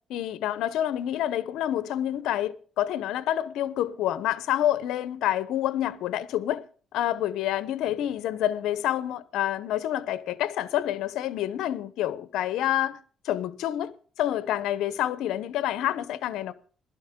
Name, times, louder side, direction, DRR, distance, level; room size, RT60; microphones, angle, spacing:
voice 1, 0.1-6.6 6.9-13.0 13.2-13.9 14.2-16.5, left 12 dB, 85° left, 0.8 m, -28 dB
16.0 x 12.5 x 3.7 m
cardioid pair, 90°, 0 cm